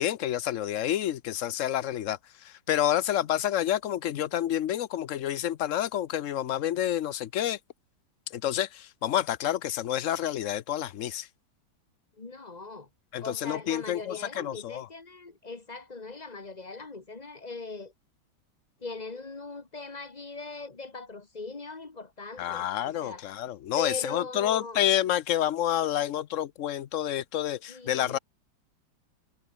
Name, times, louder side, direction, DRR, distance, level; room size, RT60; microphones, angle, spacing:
voice 1, 0.0-7.6 8.3-11.3 13.1-14.9 22.4-28.2, left 11 dB, 65° left, 0.8 m, -29 dB
voice 2, 12.2-12.9 13.2-17.9 18.8-23.2 23.8-24.8 27.7-28.2, left 3 dB, 25° left, 1.4 m, -40 dB
omnidirectional pair, 2.1 m